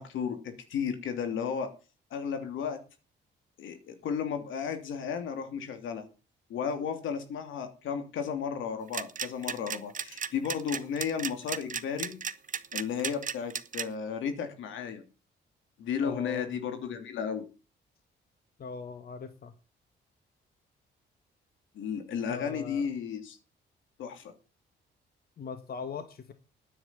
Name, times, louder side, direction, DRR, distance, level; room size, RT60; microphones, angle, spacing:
voice 1, 0.0-1.7 2.1-2.8 3.6-6.0 6.5-12.1 12.7-15.0 15.8-17.4 21.7-23.4 24.0-24.3, left 7 dB, 80° left, 7 dB, 3.1 m, -34 dB
sound 1, 8.9-13.8, right 7 dB, 40° right, 1.2 m, -34 dB
voice 2, 16.0-16.5 18.6-19.5 22.3-22.9 25.4-26.3, left 5 dB, 50° left, 9 dB, 1.6 m, -40 dB
10.0 x 9.0 x 7.0 m, 0.33 s
cardioid pair, 90°, 20 cm